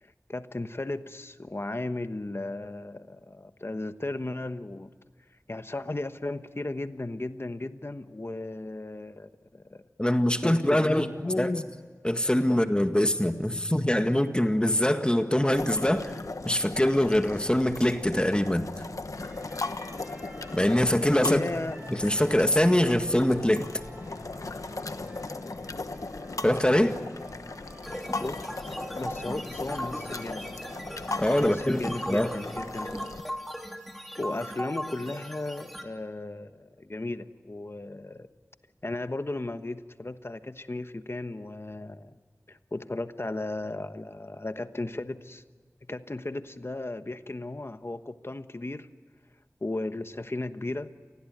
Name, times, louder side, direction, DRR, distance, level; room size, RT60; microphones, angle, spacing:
voice 1, 0.0-4.9 5.5-9.8 10.4-11.7 12.5-12.6 21.2-21.9 27.9-28.4 28.9-30.8 31.1-33.0 33.3-33.4 34.2-38.3 38.8-42.2 42.5-45.4 45.9-48.9 49.6-50.9, left 2 dB, 50° left, 10 dB, 1.2 m, -35 dB
voice 2, 10.0-11.1 11.4-11.5 12.0-16.2 16.4-18.7 20.5-21.4 21.9-23.7 26.4-27.0 31.2-32.3, left 1 dB, 20° left, 7 dB, 1.9 m, -23 dB
sound 1, 15.5-33.2, left 3 dB, 85° left, 1.1 m, -38 dB
sound 2, 19.1-33.0, right 1 dB, 30° right, 7.9 m, -51 dB
sound 3, 27.8-35.8, equal, ahead, 3.2 m, -38 dB
28.0 x 20.0 x 9.4 m, 1.5 s
wide cardioid pair, 50°, 5 cm